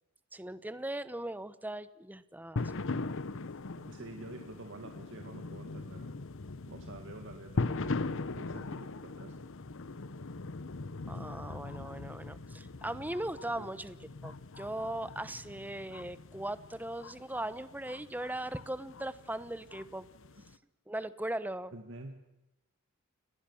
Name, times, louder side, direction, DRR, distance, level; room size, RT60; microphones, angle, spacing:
voice 1, 0.3-2.8 11.1-13.9 14.2-20.1 20.9-21.7, right 1 dB, 10° right, 14 dB, 1.0 m, -39 dB
sound 1, 2.6-20.5, left 3 dB, 65° left, 0.9 m, -40 dB
voice 2, 3.8-6.1 6.7-9.4 13.6-13.7 21.7-22.2, right 2 dB, 60° right, 4 dB, 2.0 m, -48 dB
29.5 x 19.5 x 7.2 m, 0.91 s
head